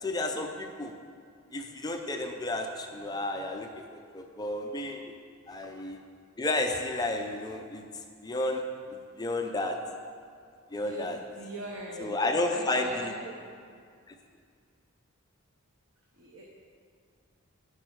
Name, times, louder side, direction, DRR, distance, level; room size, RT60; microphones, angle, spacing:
voice 1, 0.0-0.9 1.5-5.2 5.5-6.0 6.4-7.8 8.2-8.6 8.9-9.8 10.7-11.2 12.0-13.1 14.1-14.2, left 2 dB, 20° left, 3 dB, 0.5 m, -32 dB
voice 2, 10.7-13.4 16.2-16.5, right 1 dB, 60° right, -1 dB, 1.0 m, -42 dB
10.0 x 6.6 x 6.1 m, 2.1 s
head